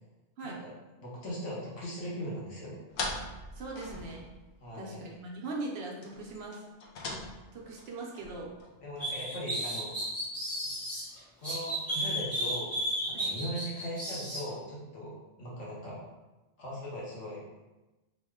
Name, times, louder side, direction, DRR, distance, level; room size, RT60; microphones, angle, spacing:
voice 1, 1.0-2.8 4.6-5.0 8.8-9.9 11.4-16.0 16.6-17.4, equal, 90° left, -5 dB, 1.3 m, -39 dB
sound 1, 2.9-4.7 5.0-5.1 5.3-5.4 6.0-9.0, left 2 dB, 70° left, 0.8 m, -41 dB
voice 2, 3.5-4.3 4.7-6.6 7.5-8.5 13.1-13.4, right 2 dB, 65° right, -1 dB, 0.8 m, -40 dB
sound 2, 9.0-11.0 11.4-14.4, equal, ahead, 1.0 m, -33 dB
2.9 x 2.1 x 3.4 m, 1.1 s
omnidirectional pair, 1.2 m